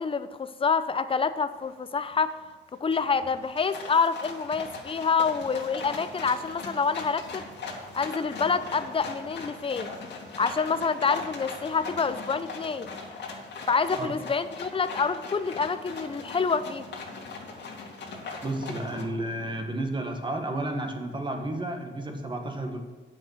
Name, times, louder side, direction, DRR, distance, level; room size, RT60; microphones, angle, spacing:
voice 1, 0.0-2.3 2.8-7.5 7.9-9.9 10.4-12.9 13.7-16.9, left 5 dB, 25° left, 12 dB, 0.6 m, -27 dB
sound 1, 1.7-1.8 2.1-2.5 2.9-19.0, left 3 dB, 65° left, 2.2 m, -40 dB
voice 2, 18.4-22.8, right 1 dB, 25° right, 4 dB, 1.6 m, -32 dB
8.8 x 6.4 x 6.4 m, 1.3 s
cardioid pair, 90°, 20 cm